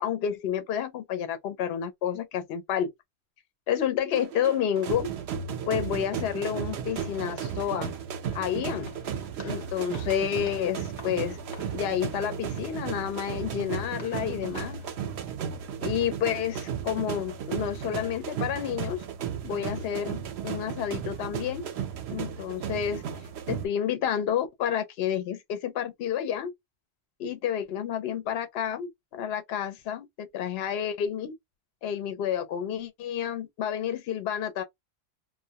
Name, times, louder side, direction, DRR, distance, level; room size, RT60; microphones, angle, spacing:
voice 1, 0.0-2.9 3.7-5.1 5.7-7.9 8.3-8.9 9.4-11.4 11.7-14.8 15.8-19.0 19.4-21.7 22.1-23.0 23.5-26.5 27.2-31.3 31.8-34.6, left 9 dB, 70° left, 0.8 m, -30 dB
sound 1, 4.1-23.7, right 7 dB, 75° right, 0.8 m, -35 dB
Walk footsteps, 6.9-15.0, left 3 dB, 35° left, 0.5 m, -51 dB
2.1 x 2.1 x 2.7 m
omnidirectional pair, 1.1 m